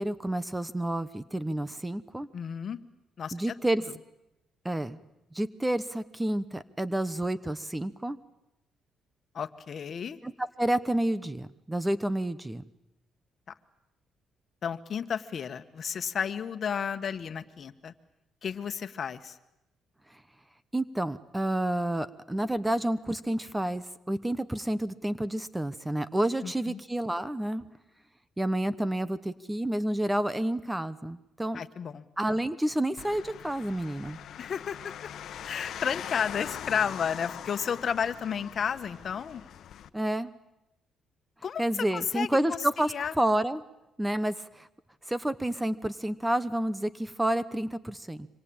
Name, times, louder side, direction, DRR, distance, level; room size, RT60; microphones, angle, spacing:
voice 1, 0.0-2.3 3.3-3.8 4.6-5.0 5.3-8.2 10.2-10.3 10.6-12.6 20.7-27.6 28.4-31.6 32.2-34.2 39.9-40.3 41.6-43.6 44.0-44.7 45.1-48.3, right 1 dB, 10° right, 15 dB, 1.0 m, -29 dB
voice 2, 2.3-2.8 3.2-3.5 9.3-10.2 13.5-13.6 14.6-17.9 18.4-19.4 26.4-26.8 31.5-32.0 34.4-34.9 35.4-39.4 41.4-43.1, left 7 dB, 50° left, 10 dB, 1.5 m, -32 dB
sound 1, 33.0-39.9, left 10 dB, 70° left, 1.1 m, -42 dB
26.0 x 25.0 x 8.8 m, 0.89 s
cardioid pair, 90°, 0 cm